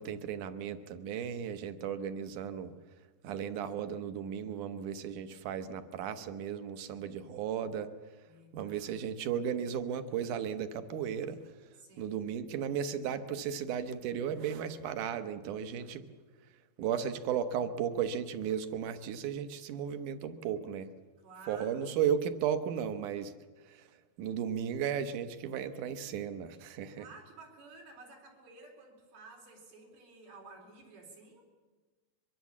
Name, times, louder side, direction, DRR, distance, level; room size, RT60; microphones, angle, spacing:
voice 1, 0.0-2.7 3.2-7.9 8.5-11.4 12.0-16.0 16.8-20.9 21.5-23.3 23.7-23.8 24.2-27.1, right 8 dB, 65° right, 10 dB, 2.3 m, -35 dB
voice 2, 8.2-9.2 11.8-12.3 21.2-22.1 27.0-31.4, right 3 dB, 85° right, 0 dB, 6.4 m, -53 dB
23.5 x 23.0 x 7.4 m, 1.3 s
omnidirectional pair, 4.3 m